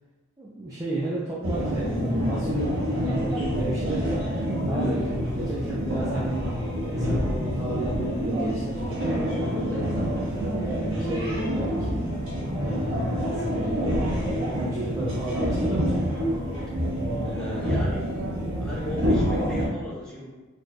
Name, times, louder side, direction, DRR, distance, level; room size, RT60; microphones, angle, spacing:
voice 1, 0.4-6.4 6.9-10.4 10.7-12.0 12.6-14.1 14.6-16.0, right 1 dB, 15° right, -8 dB, 0.4 m, -33 dB
sound 1, 1.4-19.7, equal, 70° right, 1.1 m, -27 dB
voice 2, 17.2-18.3 18.6-20.3, left 1 dB, 5° left, -7 dB, 0.8 m, -37 dB
4.3 x 3.2 x 2.2 m, 1.2 s
head